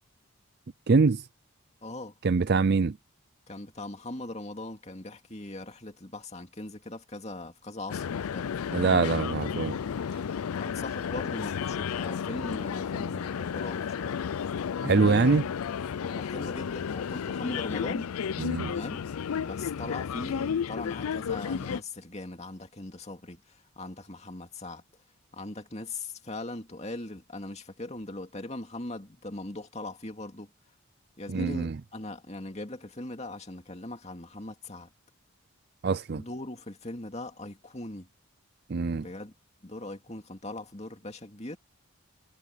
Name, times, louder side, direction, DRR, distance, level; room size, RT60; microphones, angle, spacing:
voice 1, 0.9-1.2 2.2-2.9 8.7-9.8 10.1-10.2 14.8-15.4 18.4-18.7 31.3-31.7 35.8-36.2 38.7-39.0, right 4 dB, 50° right, 0.4 m, -24 dB
voice 2, 1.8-2.1 3.5-8.6 10.6-14.2 14.8-15.4 16.0-18.1 18.7-19.0 19.4-24.8 25.3-30.5 31.2-34.9 36.2-38.1 39.0-39.3 39.6-41.6, left 2 dB, 30° left, 2.4 m, -40 dB
sound 1, 7.9-21.8, left 7 dB, 85° left, 0.4 m, -32 dB
head